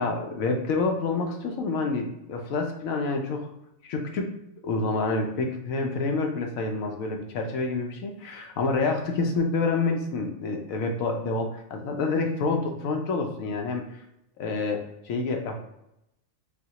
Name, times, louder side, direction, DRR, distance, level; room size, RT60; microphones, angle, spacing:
voice 1, 0.0-3.5 3.8-4.3 4.6-14.0 14.4-15.6, left 3 dB, 85° left, 3 dB, 1.0 m, -28 dB
6.1 x 2.2 x 2.9 m, 0.83 s
omnidirectional pair, 1.4 m